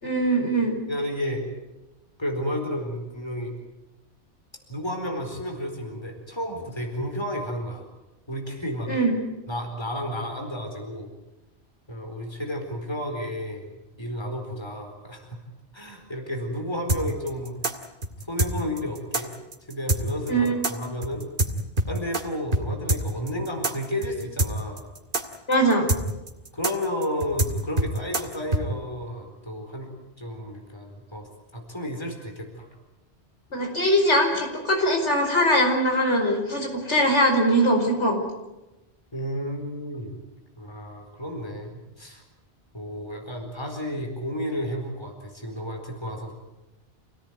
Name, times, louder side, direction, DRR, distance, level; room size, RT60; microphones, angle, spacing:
voice 1, 0.0-0.8 8.9-9.1 20.3-20.8 25.5-25.9 33.5-38.2, equal, 80° left, 2 dB, 5.3 m, -21 dB
voice 2, 0.9-1.4 2.2-3.5 4.7-7.8 8.3-8.9 9.5-11.1 11.9-13.7 14.0-15.3 15.7-17.5 18.3-19.3 19.7-21.3 21.9-24.9 26.5-29.9 30.2-31.3 31.5-32.7 39.1-40.2 40.6-42.2 42.7-46.3, equal, 25° left, 3 dB, 4.4 m, -32 dB
sound 1, 16.9-22.2 22.5-22.6 22.9-28.6, right 2 dB, 45° right, 2.2 m, -25 dB
27.5 x 17.5 x 9.4 m, 1.0 s
omnidirectional pair, 1.2 m